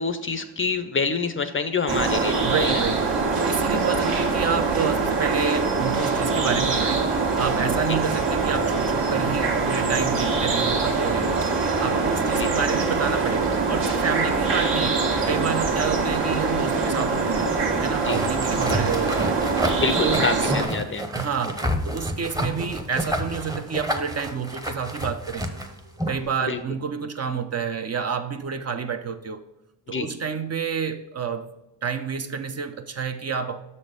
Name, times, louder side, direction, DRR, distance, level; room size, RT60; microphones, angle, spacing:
voice 1, 0.0-2.8 7.9-8.0 12.4-12.5 17.9-18.2 19.8-21.0 26.4-26.6 29.9-30.1, left 4 dB, 30° left, 9 dB, 0.5 m, -27 dB
sound 1, 1.9-20.6, right 4 dB, 65° right, 1.5 m, -23 dB
voice 2, 2.4-3.1 3.3-7.1 7.4-11.3 11.8-17.5 17.8-19.4 20.0-20.5 21.1-25.5 26.1-29.4 29.9-31.5 31.8-33.6, right 6 dB, 35° right, 7 dB, 0.6 m, -29 dB
sound 2, 18.1-26.3, equal, 10° right, 0.8 m, -30 dB
6.3 x 4.2 x 5.0 m, 0.94 s
supercardioid pair, 65°, 45 cm